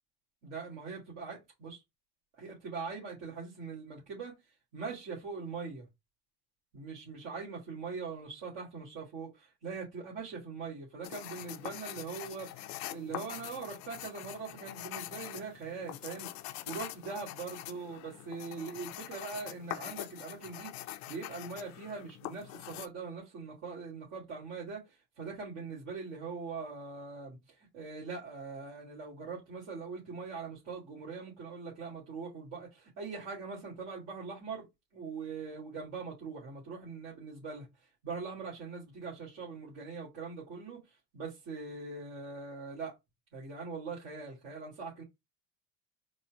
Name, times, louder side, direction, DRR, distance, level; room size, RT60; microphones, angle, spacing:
voice 1, 0.4-1.8 2.4-4.3 4.7-5.9 6.7-16.3 16.7-34.7 34.9-43.0 43.3-45.0, right 4 dB, 70° right, 1.9 m, -42 dB
sound 1, 11.0-22.9, left 15 dB, 65° left, 0.5 m, -44 dB
4.2 x 2.1 x 4.5 m
supercardioid pair, 120°, 30 cm